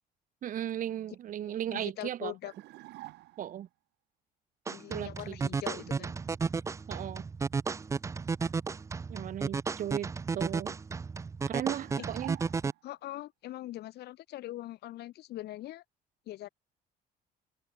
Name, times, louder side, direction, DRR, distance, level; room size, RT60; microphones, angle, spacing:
voice 1, 0.4-2.3 3.4-3.7 4.9-5.4 6.0-6.1 6.9-7.3 9.1-10.7 11.5-12.4, right 11 dB, 55° right, 1.0 m, -36 dB
voice 2, 1.4-2.5 4.7-6.1 12.0-12.1 12.8-15.8 16.3-16.5, left 15 dB, 75° left, 3.5 m, -42 dB
sound 1, 2.4-3.6 11.7-13.0, right 19 dB, 85° right, 2.7 m, -49 dB
sound 2, 4.7-12.7, right 5 dB, 20° right, 0.4 m, -33 dB
open air
cardioid pair, 110°, 17 cm